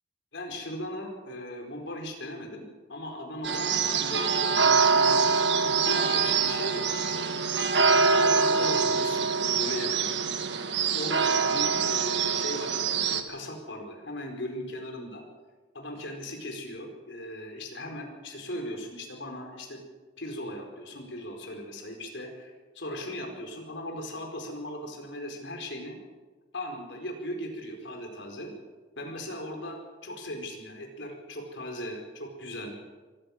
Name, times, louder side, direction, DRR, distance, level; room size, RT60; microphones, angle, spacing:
voice 1, 0.3-7.3 7.8-10.1 10.9-15.2 15.7-19.8 20.2-26.0 26.5-28.5 29.0-32.8, left 1 dB, 70° left, 2 dB, 4.8 m, -38 dB
sound 1, 3.4-13.2, right 5 dB, 65° right, 1.7 m, -24 dB
24.5 x 15.5 x 7.3 m, 1.3 s
head